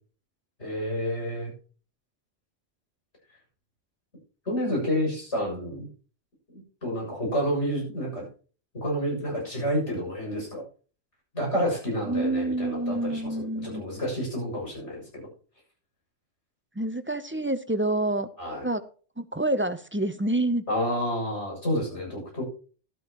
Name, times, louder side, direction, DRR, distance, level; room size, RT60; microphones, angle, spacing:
voice 1, 0.6-1.5 4.5-5.9 6.5-8.2 8.7-10.6 11.3-15.3 18.4-18.6 20.7-22.4, equal, 85° left, -1 dB, 7.5 m, -29 dB
voice 2, 12.0-13.8 16.8-18.3 18.6-18.8 19.2-20.6, right 2 dB, 15° right, 11 dB, 0.5 m, -27 dB
13.0 x 12.5 x 3.0 m, 0.38 s
omnidirectional pair, 1.2 m